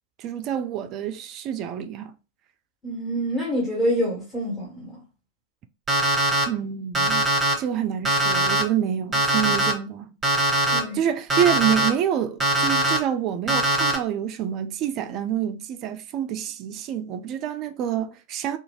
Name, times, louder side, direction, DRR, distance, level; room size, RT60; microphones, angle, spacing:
voice 1, 0.2-2.1 6.5-7.3 7.6-10.2 10.9-18.6, right 9 dB, 35° right, 0.4 m, -27 dB
voice 2, 2.8-5.0 10.7-11.0, equal, 10° left, 1.4 m, -26 dB
Alarm, 5.9-6.4 6.9-7.5 8.0-8.6 9.1-9.7 10.2-10.8 11.3-11.9 12.4-13.0 13.5-14.0, right 1 dB, 15° right, 1.0 m, -21 dB
2.6 x 2.4 x 3.0 m
figure-of-eight pair, 90°, 0 cm